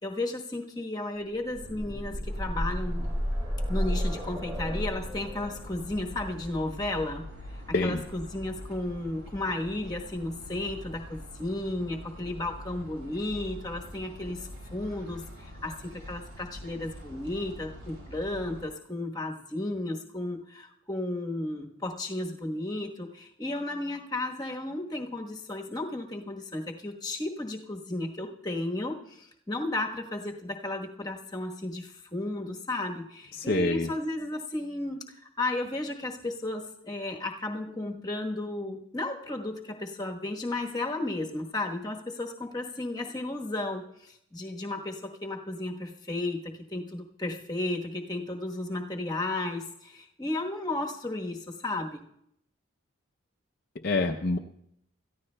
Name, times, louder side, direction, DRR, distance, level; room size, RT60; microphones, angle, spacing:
voice 1, 0.0-3.1 3.7-7.3 7.8-52.0, left 2 dB, 20° left, 1 dB, 1.1 m, -34 dB
sound 1, 1.3-9.1 10.2-10.3 10.7-10.8, equal, 20° right, 7.2 m, -33 dB
sound 2, 2.3-18.7, equal, 90° right, 6.2 m, -45 dB
voice 2, 33.3-33.9 53.8-54.4, left 2 dB, 45° left, 3 dB, 0.5 m, -26 dB
26.5 x 14.5 x 2.2 m, 0.78 s
head